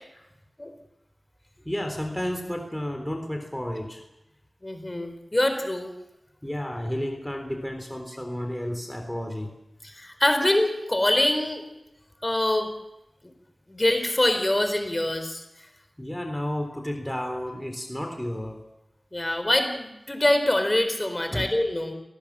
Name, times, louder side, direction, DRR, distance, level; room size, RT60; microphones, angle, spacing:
voice 1, 1.7-4.0 6.4-9.5 16.0-18.6 21.3-21.5, equal, 5° left, 4 dB, 3.7 m, -32 dB
voice 2, 4.6-5.9 10.0-11.6 12.2-12.7 13.7-15.4 19.1-21.9, left 1 dB, 25° left, 7 dB, 4.2 m, -24 dB
24.0 x 18.5 x 7.5 m, 0.91 s
cardioid pair, 45°, 0 cm